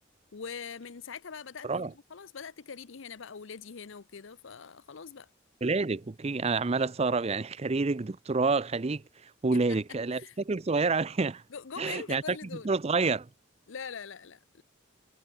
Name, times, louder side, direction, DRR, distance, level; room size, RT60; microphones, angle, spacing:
voice 1, 0.3-5.3 9.5-9.8 10.1-10.4 11.5-12.7 13.7-14.6, left 6 dB, 65° left, 0.7 m, -43 dB
voice 2, 5.6-9.0 9.4-11.4 11.8-12.4 12.6-13.3, right 3 dB, 30° right, 0.5 m, -28 dB
head